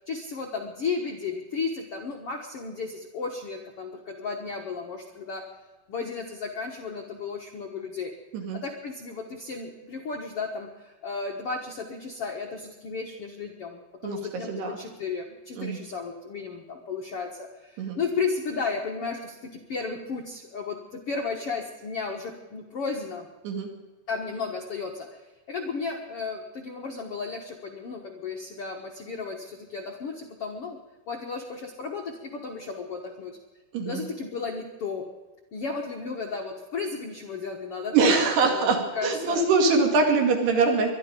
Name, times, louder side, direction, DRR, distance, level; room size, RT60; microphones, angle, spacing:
voice 1, 0.1-5.4 5.9-8.1 8.5-23.3 24.1-30.8 31.1-33.4 33.8-35.1 35.5-39.4, left 4 dB, 70° left, 2 dB, 1.4 m, -34 dB
voice 2, 33.7-34.0 37.9-40.9, right 4 dB, 85° right, 3 dB, 4.4 m, -23 dB
22.0 x 12.0 x 5.2 m, 1.2 s
omnidirectional pair, 4.6 m